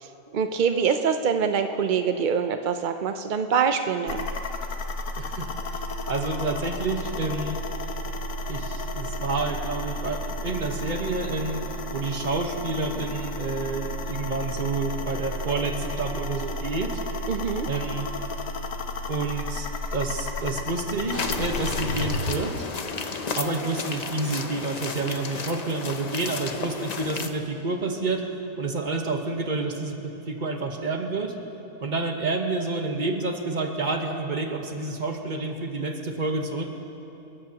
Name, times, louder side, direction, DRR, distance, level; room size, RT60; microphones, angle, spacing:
voice 1, 0.0-4.3 17.3-17.7, right 6 dB, 75° right, 7 dB, 0.4 m, -25 dB
sound 1, 4.1-22.4, left 1 dB, 70° left, 1.4 m, -32 dB
voice 2, 5.1-7.6 8.5-11.6 11.9-17.0 17.7-18.1 19.1-22.7 23.3-28.3 28.6-31.4 31.8-36.8, right 3 dB, 35° right, 3 dB, 1.2 m, -29 dB
sound 2, 21.1-27.3, left 4 dB, 45° left, 0.5 m, -32 dB
29.0 x 14.5 x 2.9 m, 3.0 s
omnidirectional pair, 1.6 m